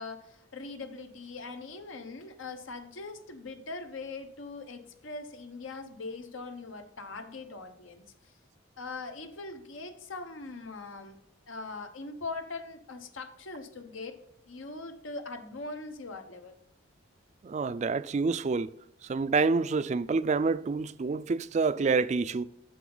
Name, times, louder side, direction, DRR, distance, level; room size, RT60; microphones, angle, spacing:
voice 1, 0.0-8.3 8.8-11.2 11.5-16.5, left 3 dB, 90° left, 1.0 m, -41 dB
voice 2, 17.4-18.7 19.0-22.4, right 4 dB, 35° right, 0.3 m, -27 dB
9.2 x 6.9 x 3.9 m
head